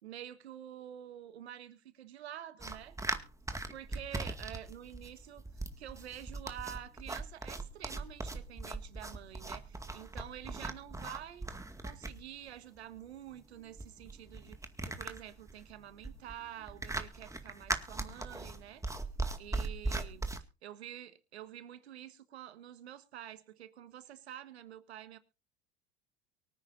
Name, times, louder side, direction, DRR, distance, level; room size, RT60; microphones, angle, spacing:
voice 1, 0.0-3.0 3.7-11.5 11.8-18.8 19.4-20.3 20.6-25.2, right 11 dB, 85° right, 1.5 m, -48 dB
sound 1, 2.6-20.4, right 2 dB, 10° right, 2.0 m, -40 dB
24.0 x 9.5 x 2.6 m
hypercardioid pair, 80°, 32 cm